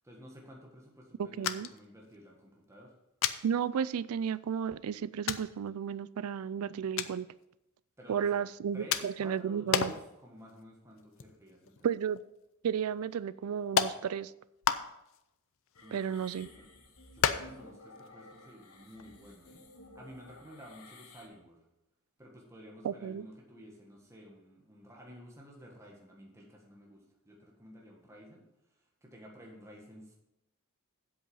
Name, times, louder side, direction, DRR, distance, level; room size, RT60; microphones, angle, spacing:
voice 1, 0.0-3.0 8.0-8.5 8.7-11.9 15.8-16.7 17.1-19.6 19.9-21.6 22.2-28.4 28.7-30.1, equal, 15° right, -1 dB, 1.6 m, -52 dB
sound 1, 1.4-1.9 2.1-2.2 3.2-3.4 4.3-4.4 5.3-5.5 7.0-7.2 8.9-9.3 9.7-10.1 10.5-10.6 11.0-11.9 12.2-12.3 13.1-13.2 13.8-14.0 14.6-15.2 15.7-16.4 17.2-17.7 18.0-18.1 18.4-18.5 18.9-19.1, left 8 dB, 65° left, 0.6 m, -31 dB
voice 2, 1.4-1.7 3.4-7.3 8.1-9.9 11.8-12.2 12.6-14.3 15.9-16.5 22.8-23.2, right 7 dB, 75° right, 19 dB, 0.4 m, -33 dB
sound 2, 15.7-21.3, left 2 dB, 90° left, 1.5 m, -54 dB
8.0 x 7.7 x 5.5 m, 0.87 s
head